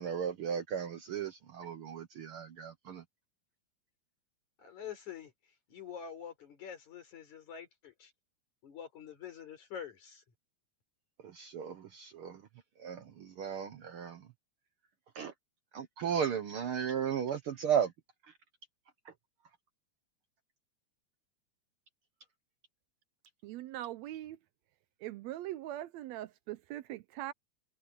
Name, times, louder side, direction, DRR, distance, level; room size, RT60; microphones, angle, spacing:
voice 1, 0.0-3.0 11.2-12.4 12.8-14.3 15.1-15.3 15.7-17.9 19.0-19.1, right 8 dB, 65° right, 1.5 m, -35 dB
voice 2, 4.6-5.3 5.7-8.1 8.6-10.2, left 8 dB, 75° left, 5.7 m, -46 dB
voice 3, 23.4-24.4 25.0-27.3, right 14 dB, 80° right, 1.7 m, -41 dB
omnidirectional pair, 3.4 m